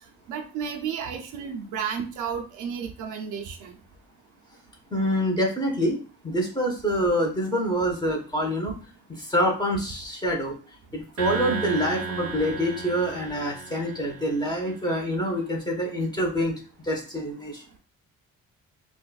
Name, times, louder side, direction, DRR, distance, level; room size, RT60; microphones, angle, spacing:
voice 1, 0.3-3.8, right 7 dB, 90° right, 2 dB, 0.7 m, -32 dB
voice 2, 4.9-6.0 6.2-8.7 9.3-10.5 10.9-16.5 16.9-17.6, equal, 15° left, -1 dB, 1.2 m, -26 dB
sound 1, 11.2-14.7, right 4 dB, 50° right, 0.8 m, -34 dB
4.0 x 2.5 x 2.4 m, 0.36 s
cardioid pair, 90°, 30 cm